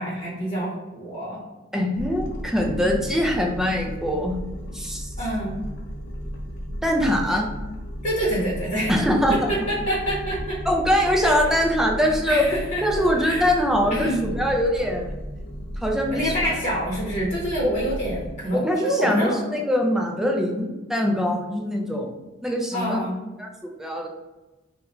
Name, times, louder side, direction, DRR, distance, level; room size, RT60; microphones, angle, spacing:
voice 1, 0.0-1.4 5.2-5.7 8.0-8.9 9.3-10.6 11.2-11.6 12.3-12.8 13.2-13.5 13.9-14.2 16.1-19.4 22.7-23.2, right 1 dB, 35° left, -6 dB, 0.9 m, -27 dB
voice 2, 1.7-4.4 4.7-5.1 6.8-7.5 8.9-9.5 10.7-12.4 12.8-15.1 15.8-16.3 17.6-17.7 18.5-23.0 23.4-24.1, equal, ahead, 0 dB, 0.3 m, -23 dB
sound 1, 1.9-18.3, equal, 55° left, 0.5 m, -34 dB
3.0 x 2.2 x 2.4 m, 1.1 s
head